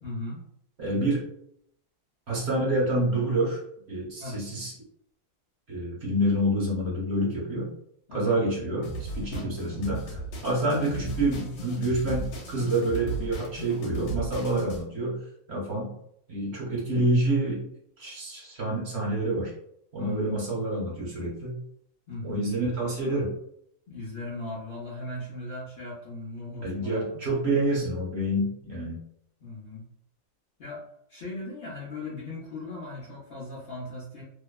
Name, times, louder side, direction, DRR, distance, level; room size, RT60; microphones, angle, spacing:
voice 1, 0.0-0.5 4.2-4.4 8.1-8.4 9.3-9.5 20.0-20.5 22.1-22.5 23.9-27.2 29.4-29.8 30.6-30.8 31.1-34.2, left 2 dB, 50° left, -6 dB, 0.7 m, -38 dB
voice 2, 0.8-1.3 2.3-3.6 3.9-4.7 5.7-7.7 8.1-15.9 16.3-17.7 18.0-19.5 19.9-21.5 22.2-23.3 26.6-29.0, right 1 dB, 45° right, -5 dB, 1.1 m, -28 dB
sound 1, 8.8-14.8, right 3 dB, 80° left, 1.2 m, -36 dB
2.8 x 2.1 x 2.2 m, 0.72 s
omnidirectional pair, 1.7 m